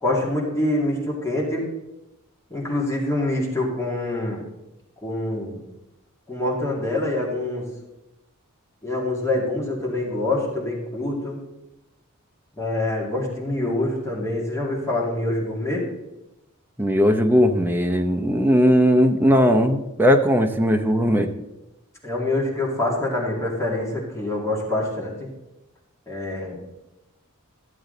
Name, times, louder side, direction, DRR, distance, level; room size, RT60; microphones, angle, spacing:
voice 1, 0.0-1.7 2.5-4.4 5.0-5.6 6.3-7.7 8.8-11.4 12.6-15.9 22.0-25.3 26.1-26.6, left 1 dB, 15° left, -4 dB, 2.4 m, -25 dB
voice 2, 16.8-21.3, equal, 10° right, 4 dB, 0.7 m, -18 dB
13.5 x 7.8 x 3.9 m, 0.96 s
head